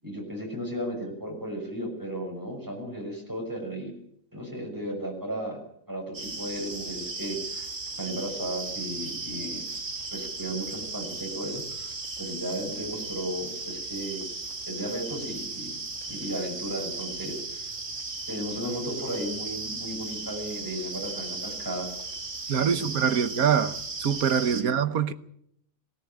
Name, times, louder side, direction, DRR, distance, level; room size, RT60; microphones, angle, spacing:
voice 1, 0.0-4.0 4.3-5.6 5.9-9.7 10.1-14.3 14.7-15.8 16.0-17.7 18.3-21.9 22.6-23.2 24.5-24.7, right 1 dB, 15° right, 6.5 m, -35 dB
sound 1, 6.1-24.6, right 3 dB, 55° right, 2.8 m, -36 dB
voice 2, 22.5-25.1, right 8 dB, 75° right, 1.5 m, -24 dB
19.0 x 17.5 x 9.1 m
omnidirectional pair, 1.5 m